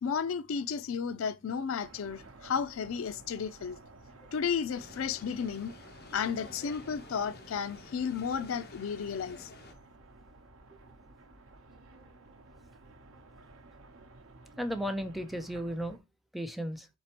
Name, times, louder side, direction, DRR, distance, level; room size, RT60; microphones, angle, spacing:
voice 1, 0.0-3.8 4.3-5.7 6.1-9.5, left 6 dB, 75° left, 0.4 m, -33 dB
sound 1, 1.8-16.0, right 2 dB, 85° right, 0.8 m, -54 dB
sound 2, 4.7-9.7, left 2 dB, 50° left, 1.0 m, -51 dB
voice 2, 14.6-16.0 16.3-16.9, equal, ahead, 0.5 m, -34 dB
4.5 x 4.0 x 2.9 m
head